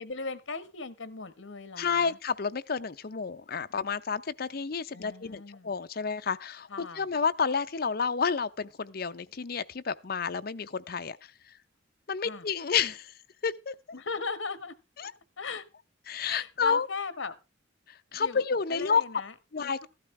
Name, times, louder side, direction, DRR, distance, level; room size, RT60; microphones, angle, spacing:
voice 1, 0.0-2.2 4.9-5.7 6.7-7.0 12.2-12.4 13.9-14.7 15.4-15.6 16.3-17.3 18.1-18.4 18.7-19.9, left 4 dB, 70° left, 1.1 m, -38 dB
voice 2, 1.8-11.5 12.1-13.1 13.4-13.8 15.0-15.1 16.1-16.9 17.9-19.0 19.5-19.9, left 6 dB, 50° left, 0.6 m, -30 dB
14.0 x 12.0 x 3.2 m
head